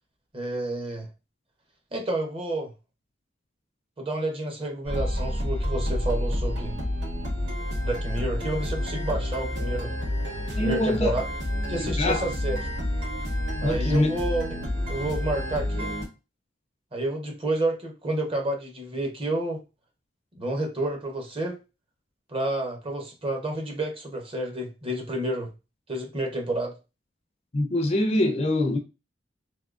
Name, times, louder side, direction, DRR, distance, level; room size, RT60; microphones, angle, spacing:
voice 1, 0.3-1.1 1.9-2.7 4.0-6.7 7.8-9.9 10.6-11.2 11.7-12.6 13.6-14.4 14.9-15.9 16.9-19.6 20.4-21.6 22.3-25.5 25.9-26.7, right 1 dB, 30° right, 0.8 m, -30 dB
sound 1, 4.9-16.1, left 1 dB, 65° right, 1.8 m, -29 dB
voice 2, 10.6-11.1 11.8-12.2 13.6-14.1 27.5-28.8, left 1 dB, 35° left, 0.5 m, -24 dB
3.6 x 2.7 x 2.4 m
head